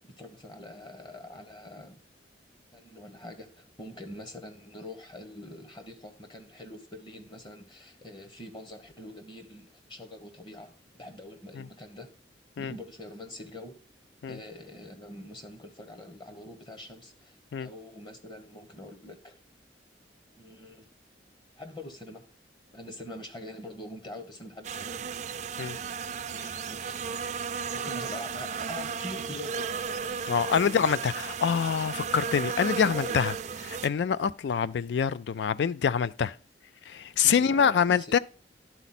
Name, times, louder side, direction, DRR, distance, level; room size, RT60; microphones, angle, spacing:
voice 1, 0.1-2.0 2.7-12.1 12.6-13.8 14.2-19.4 20.4-20.9 21.5-22.2 22.7-25.0 26.2-27.4 27.7-29.7 30.6-31.0 32.7-33.2 37.2-38.2, left 1 dB, 25° left, 1.0 m, -44 dB
sound 1, 24.6-33.9, right 6 dB, 40° right, 0.4 m, -34 dB
voice 2, 30.3-33.3 33.6-36.3 36.9-38.2, left 7 dB, 75° left, 0.3 m, -26 dB
11.0 x 4.1 x 4.2 m
head